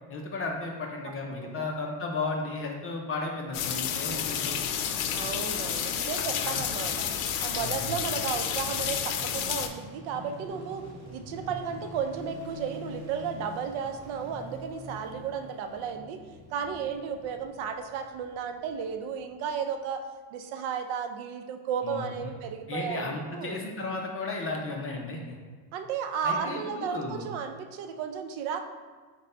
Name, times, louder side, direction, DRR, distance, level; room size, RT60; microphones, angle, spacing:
voice 1, 0.1-4.5 6.4-6.6 7.6-7.9 21.8-22.1 22.7-25.3 26.2-27.3, left 3 dB, 30° left, 0 dB, 0.5 m, -34 dB
sound 1, 3.5-9.7, left 8 dB, 85° left, 0.6 m, -30 dB
voice 2, 4.0-4.4 5.1-7.1 7.4-16.2 16.5-20.0 20.3-23.6 25.7-28.6, right 7 dB, 70° right, 6 dB, 0.6 m, -34 dB
sound 2, 6.0-19.3 19.6-19.7, equal, 25° right, 1.4 m, -48 dB
5.1 x 2.2 x 4.1 m, 1.5 s
cardioid pair, 140°, 48 cm